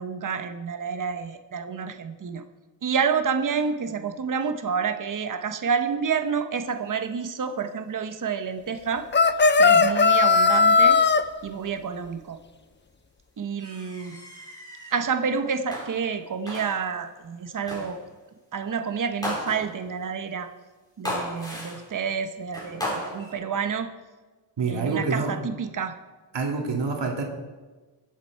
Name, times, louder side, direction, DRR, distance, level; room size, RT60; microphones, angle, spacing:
voice 1, 0.0-2.4 2.8-9.1 9.6-11.0 11.4-12.4 13.4-14.2 14.9-18.0 18.5-20.5 21.0-23.9 24.7-26.0, right 6 dB, 45° right, 8 dB, 0.9 m, -29 dB
sound 1, 9.1-11.2, left 4 dB, 25° left, 0.5 m, -17 dB
sound 2, 13.6-15.0 15.7-16.2 16.5-17.0 17.7-18.0 19.2-19.9 21.0-22.0 22.5-23.3, left 1 dB, 10° left, 4.2 m, -34 dB
voice 2, 24.6-25.3 26.3-27.2, right 4 dB, 65° right, 1 dB, 2.1 m, -26 dB
22.0 x 7.5 x 4.6 m, 1.3 s
wide cardioid pair, 130°, 45 cm